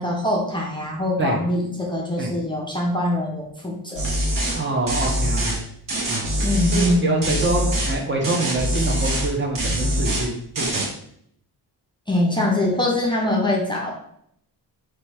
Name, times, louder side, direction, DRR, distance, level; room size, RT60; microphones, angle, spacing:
voice 1, 0.0-4.1 6.4-7.4 12.1-13.9, left 1 dB, 10° left, -3 dB, 0.5 m, -23 dB
sound 1, 4.0-4.6 4.9-5.6 5.9-7.0 7.2-8.0 8.2-9.3 9.6-10.3 10.6-10.9, right 1 dB, 55° right, 1.0 m, -24 dB
voice 2, 4.5-5.6 6.1-6.2 6.7-10.9, right 2 dB, 30° right, 0 dB, 0.7 m, -25 dB
3.1 x 3.1 x 4.6 m, 0.71 s
wide cardioid pair, 175°, 39 cm